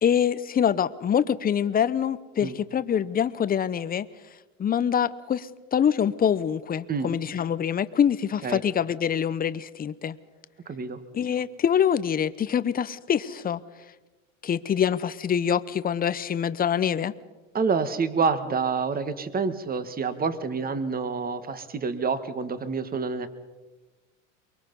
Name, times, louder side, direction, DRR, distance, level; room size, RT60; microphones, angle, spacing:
voice 1, 0.0-4.1 4.6-10.2 11.1-13.6 14.4-17.1, left 8 dB, 25° left, 15 dB, 0.8 m, -25 dB
voice 2, 10.7-11.0 17.5-23.3, right 5 dB, 25° right, 11 dB, 1.6 m, -27 dB
24.0 x 22.5 x 5.4 m, 1.2 s
supercardioid pair, 105°, 36 cm